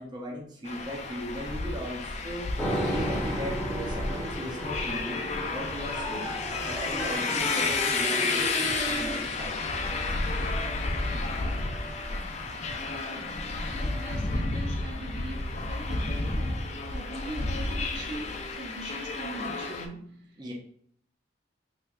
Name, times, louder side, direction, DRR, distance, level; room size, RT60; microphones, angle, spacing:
voice 1, 0.0-2.5 2.9-5.2 5.5-6.4 6.6-9.6 20.4-20.5, equal, 25° right, 0.6 m, -38 dB
sound 1, 0.7-19.9, left 3 dB, 40° left, 0.4 m, -31 dB
sound 2, 2.6-14.6, equal, 60° left, 0.8 m, -44 dB
sound 3, 2.6-9.2, right 1 dB, 5° left, 0.8 m, -34 dB
voice 2, 13.7-20.5, right 1 dB, 65° right, 0.9 m, -41 dB
3.5 x 3.3 x 2.4 m
head